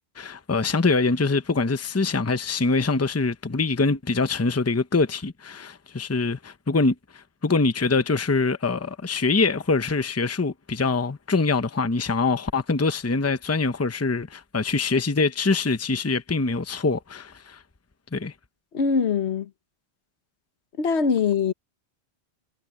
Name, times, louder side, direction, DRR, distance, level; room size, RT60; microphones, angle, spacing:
voice 1, 0.0-17.6 18.1-18.3, left 3 dB, 15° left, 0.7 m, -24 dB
voice 2, 18.7-19.5 20.8-21.5, left 5 dB, 75° left, 1.3 m, -22 dB
omnidirectional pair, 1.1 m